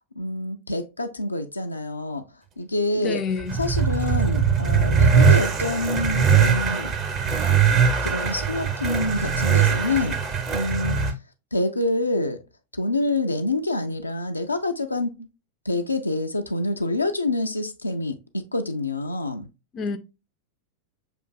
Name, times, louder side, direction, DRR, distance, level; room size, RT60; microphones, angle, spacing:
voice 1, 0.2-2.2 2.6-3.2 3.6-6.9 8.0-10.2 10.5-11.0 11.5-12.4 12.7-15.3 15.7-19.5, left 2 dB, 85° left, 0.4 m, -27 dB
voice 2, 2.9-3.6 19.7-20.0, left 5 dB, 30° left, 0.4 m, -28 dB
sound 1, 3.3-11.1, right 6 dB, 35° right, 0.8 m, -21 dB
6.8 x 2.5 x 2.2 m
figure-of-eight pair, 90°, 0 cm